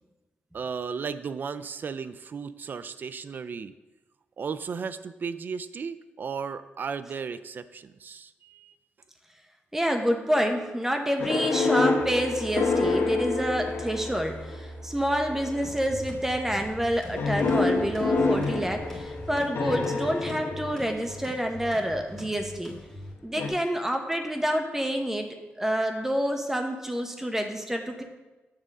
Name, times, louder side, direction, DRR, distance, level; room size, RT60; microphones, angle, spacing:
voice 1, 0.5-3.7 4.4-8.7, right 6 dB, 50° right, 13 dB, 0.3 m, -35 dB
voice 2, 9.7-22.7 23.2-28.0, equal, 10° right, 4 dB, 0.8 m, -28 dB
sound 1, 11.2-14.6 15.3-15.8 17.2-21.3 23.4-23.5, left 3 dB, 65° left, 1.1 m, -27 dB
sound 2, 12.0-19.4, right 2 dB, 35° right, 1.4 m, -43 dB
sound 3, 15.6-23.1, left 1 dB, 10° left, 1.7 m, -43 dB
7.4 x 3.7 x 6.5 m, 1.1 s
cardioid pair, 110°, 4 cm